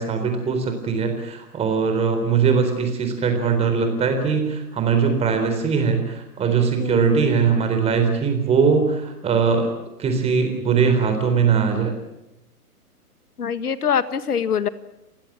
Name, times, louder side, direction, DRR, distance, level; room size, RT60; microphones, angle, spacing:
voice 1, 0.0-9.7 10.0-12.0, right 5 dB, 15° right, 6 dB, 3.9 m, -21 dB
voice 2, 6.8-7.2 13.4-14.7, left 7 dB, 70° left, 14 dB, 1.8 m, -24 dB
28.5 x 16.0 x 8.8 m, 0.90 s
hypercardioid pair, 140°, 47 cm